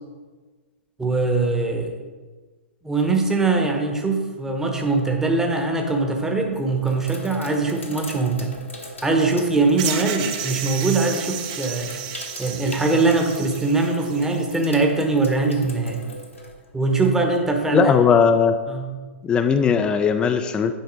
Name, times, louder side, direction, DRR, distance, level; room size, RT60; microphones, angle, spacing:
voice 1, 1.0-1.9 2.8-8.5 9.0-11.9 12.4-16.0 16.7-17.9 18.7-18.9, right 3 dB, 5° right, 2 dB, 0.9 m, -22 dB
Sink (filling or washing), 5.4-5.8 6.4-17.4, left 1 dB, 85° left, 1.3 m, -40 dB
sound 1, 9.8-14.5, right 9 dB, 40° right, 0.7 m, -32 dB
voice 2, 17.7-18.5 19.2-20.7, left 6 dB, 15° left, 8 dB, 0.3 m, -18 dB
10.0 x 4.2 x 4.0 m, 1.4 s
figure-of-eight pair, 110°, 7 cm